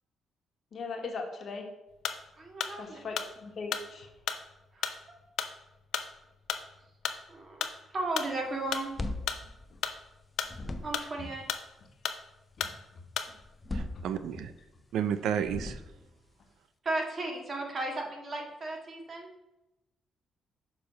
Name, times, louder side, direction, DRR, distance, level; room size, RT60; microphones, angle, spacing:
voice 1, 0.7-1.7 2.8-4.1 9.7-9.8 11.2-11.3 12.6-13.3 13.9-14.4, left 4 dB, 55° left, 3 dB, 1.3 m, -40 dB
sound 1, 1.9-13.6, left 8 dB, 75° left, 0.5 m, -35 dB
voice 2, 2.4-3.0 4.7-4.9 7.3-8.9 10.8-11.4 16.8-19.3, right 2 dB, 40° right, 1 dB, 1.6 m, -35 dB
sound 2, 8.7-10.2 10.4-11.2 13.4-14.6 15.4-16.2, left 2 dB, 25° left, 0.7 m, -38 dB
voice 3, 13.7-14.5 14.9-15.8, right 8 dB, 80° right, 11 dB, 0.4 m, -31 dB
6.7 x 3.4 x 5.4 m, 0.96 s
cardioid pair, 90°, 0 cm